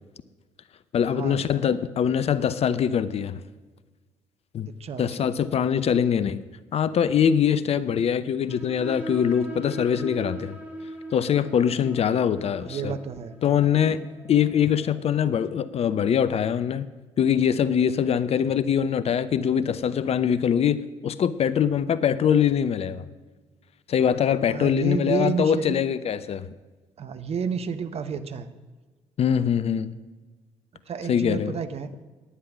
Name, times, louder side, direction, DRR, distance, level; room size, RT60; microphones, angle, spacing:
voice 1, 0.9-3.4 4.5-4.7 5.0-6.4 6.7-10.6 11.1-12.9 13.4-14.0 14.3-16.9 17.2-23.0 23.9-26.5 29.2-29.9 31.1-31.6, left 8 dB, 45° left, 0.6 m, -23 dB
voice 2, 4.8-5.3 12.6-13.3 24.5-25.8 27.0-28.5 30.9-31.9, right 6 dB, 45° right, 0.9 m, -30 dB
sound 1, 8.5-15.8, right 1 dB, 10° right, 3.4 m, -41 dB
11.0 x 9.6 x 6.1 m
figure-of-eight pair, 50°, 15 cm